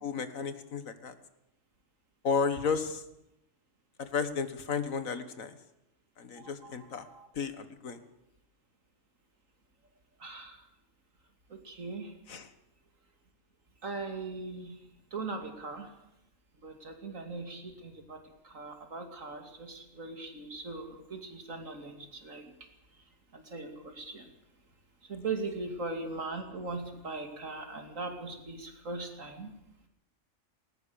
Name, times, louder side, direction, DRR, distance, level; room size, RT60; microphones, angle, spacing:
voice 1, 0.0-1.1 2.2-3.0 4.0-5.5 6.2-7.1 7.4-8.0 12.3-12.4, left 5 dB, 80° left, 11 dB, 1.9 m, -33 dB
voice 2, 6.4-7.3 10.2-10.7 11.5-12.1 13.8-14.8 15.1-15.9 16.6-22.5 23.3-24.3 25.0-29.5, right 3 dB, 75° right, 5 dB, 3.0 m, -40 dB
19.5 x 19.0 x 7.0 m, 0.87 s
omnidirectional pair, 1.4 m